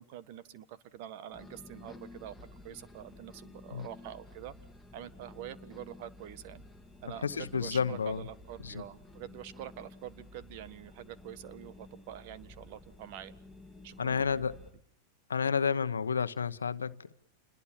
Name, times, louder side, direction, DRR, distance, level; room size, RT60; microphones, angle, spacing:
voice 1, 0.0-4.5 4.9-6.6 7.0-13.3 13.8-14.4, right 11 dB, 55° right, 15 dB, 1.4 m, -46 dB
sound 1, 1.3-14.7, left 2 dB, ahead, 2.7 m, -52 dB
voice 2, 7.2-8.3 8.6-8.8 14.0-14.6 15.3-17.1, left 6 dB, 90° left, 13 dB, 1.0 m, -31 dB
28.0 x 21.5 x 7.3 m, 0.66 s
hypercardioid pair, 100°, 0 cm